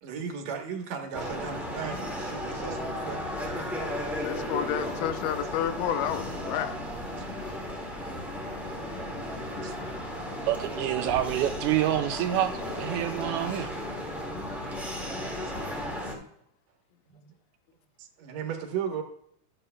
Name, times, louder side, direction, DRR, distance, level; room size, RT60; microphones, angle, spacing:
voice 1, 0.0-3.5 17.1-17.3 18.2-19.0, right 7 dB, 65° right, 2.2 m, -36 dB
sound 1, 1.1-16.1, left 1 dB, ahead, 0.8 m, -35 dB
voice 2, 4.2-6.8, left 10 dB, 80° left, 2.2 m, -30 dB
voice 3, 10.5-13.7, right 12 dB, 80° right, 2.0 m, -27 dB
13.5 x 9.0 x 2.2 m
omnidirectional pair, 3.6 m